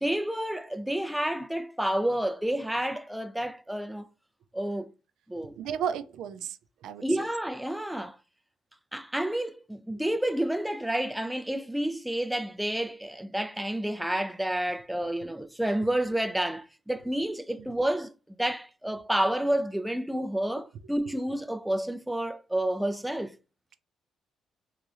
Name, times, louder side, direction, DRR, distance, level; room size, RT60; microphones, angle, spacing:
voice 1, 0.0-4.1 4.5-4.9 5.3-5.5 7.0-8.2 8.9-18.1 18.4-23.3, right 1 dB, 5° right, 0.4 m, -30 dB
voice 2, 5.6-6.6 6.8-7.0, right 8 dB, 85° right, 0.3 m, -33 dB
3.7 x 3.1 x 2.4 m
cardioid pair, 90°, 0 cm